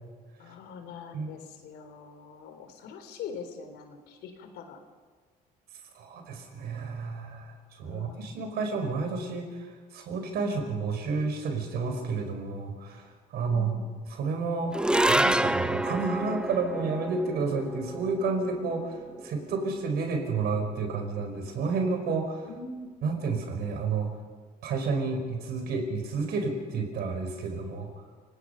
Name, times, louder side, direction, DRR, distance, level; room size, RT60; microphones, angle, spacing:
voice 1, 0.4-4.8 7.8-8.4 13.5-13.9 22.4-22.9, left 5 dB, 80° left, 6 dB, 3.7 m, -43 dB
voice 2, 5.9-13.7 14.1-14.7 15.0-22.5 23.0-24.2 24.6-28.0, right 4 dB, 70° right, 5 dB, 5.0 m, -31 dB
sound 1, 14.7-21.2, right 1 dB, 5° right, 0.6 m, -29 dB
29.0 x 18.5 x 5.7 m, 1.5 s
cardioid pair, 110°, 17 cm